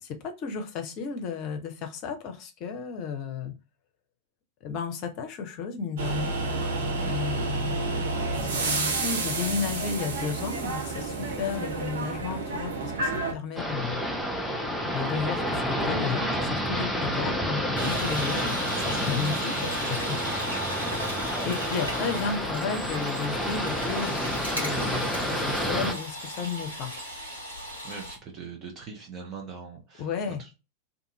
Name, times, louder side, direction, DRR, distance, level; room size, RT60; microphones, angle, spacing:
voice 1, 0.0-3.6 4.6-6.3 7.0-14.0 14.9-20.9 21.4-26.9 30.0-30.4, left 6 dB, 40° left, 6 dB, 0.7 m, -33 dB
sound 1, 6.0-13.3, right 3 dB, 60° right, 0.7 m, -30 dB
sound 2, 13.6-25.9, equal, ahead, 0.6 m, -29 dB
sound 3, 17.7-28.2, equal, 90° right, 1.3 m, -35 dB
voice 2, 27.8-30.5, right 6 dB, 30° right, 0 dB, 0.8 m, -41 dB
2.5 x 2.5 x 2.8 m, 0.27 s
figure-of-eight pair, 90°, 0 cm